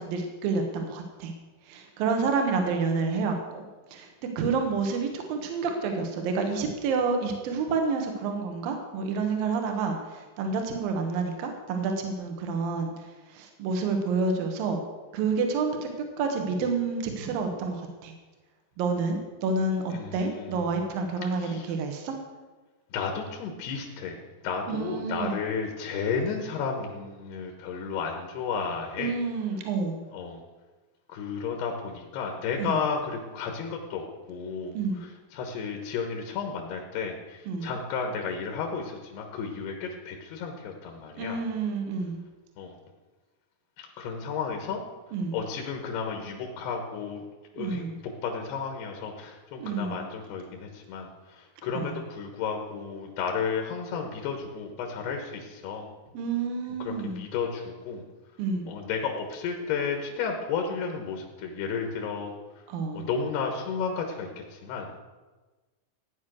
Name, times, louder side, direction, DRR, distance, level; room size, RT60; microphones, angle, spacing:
voice 1, 0.0-1.3 1.7-3.6 3.9-4.1 4.4-14.8 15.1-15.9 16.2-18.1 18.8-22.2 24.7-25.4 29.0-30.0 32.6-32.7 34.7-35.0 37.5-37.7 41.2-42.2 45.1-45.4 47.6-47.9 49.6-50.0 51.7-52.0 56.1-57.2 58.4-58.7 62.7-63.1, right 4 dB, 65° right, 4 dB, 3.1 m, -29 dB
voice 2, 19.9-20.6 21.2-21.7 22.9-24.2 24.4-29.1 30.1-30.4 31.1-41.4 42.6-42.7 43.8-44.8 45.3-47.2 47.6-55.9 56.8-58.0 58.7-62.3 62.9-64.9, left 5 dB, 90° left, 3 dB, 3.5 m, -33 dB
15.5 x 9.7 x 6.4 m, 1.3 s
omnidirectional pair, 4.6 m